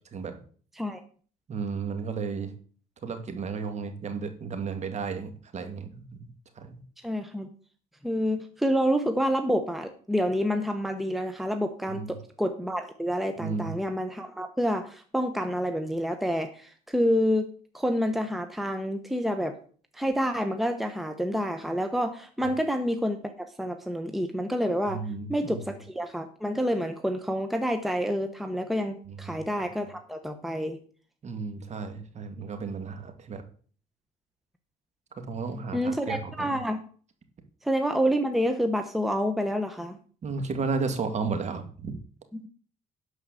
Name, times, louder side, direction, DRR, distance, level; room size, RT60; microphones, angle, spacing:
voice 1, 1.5-2.5 3.0-6.0 6.6-6.8 11.9-12.1 13.4-13.7 22.4-22.5 24.9-25.5 29.1-29.4 31.2-33.4 35.2-36.6 40.2-42.0, right 4 dB, 40° right, 8 dB, 2.1 m, -33 dB
voice 2, 7.0-7.5 8.0-19.6 19.9-25.0 25.3-30.8 35.7-36.8 37.6-40.0 42.3-42.5, equal, ahead, 7 dB, 1.0 m, -28 dB
11.5 x 4.8 x 7.6 m, 0.44 s
cardioid pair, 110°, 17 cm